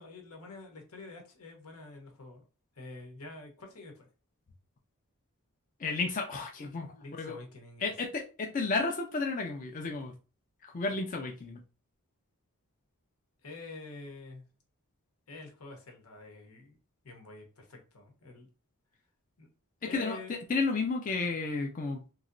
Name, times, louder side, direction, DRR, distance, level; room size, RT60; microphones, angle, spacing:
voice 1, 0.0-2.4 2.7-4.1 6.9-7.9 13.4-14.4 15.3-16.8 17.0-18.5 19.4-19.5 19.8-20.4, left 2 dB, 85° left, 1.0 m, -47 dB
voice 2, 5.8-7.4 7.8-10.1 10.6-11.6 19.8-22.1, left 3 dB, 35° left, 0.4 m, -32 dB
3.1 x 2.8 x 2.5 m
head